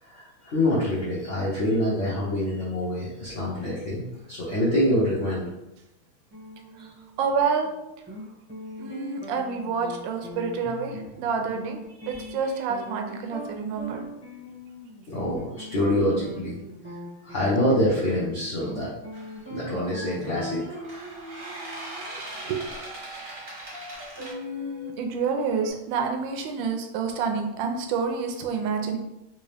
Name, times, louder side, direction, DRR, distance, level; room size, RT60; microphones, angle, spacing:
voice 1, 0.0-5.5 12.0-12.3 15.1-16.6 17.2-18.9 19.5-20.8, left 1 dB, 65° left, -7 dB, 0.7 m, -26 dB
sound 1, 6.3-7.8 8.1-25.7, right 1 dB, 10° left, 1.1 m, -41 dB
voice 2, 7.2-7.7 8.8-11.8 12.1-14.0 22.2-22.7 24.2-29.0, right 5 dB, 75° right, 4 dB, 1.1 m, -28 dB
sound 2, 19.1-19.4 20.7-24.3, right 1 dB, 40° right, 0.8 m, -39 dB
3.6 x 2.8 x 3.3 m, 0.92 s
omnidirectional pair, 2.3 m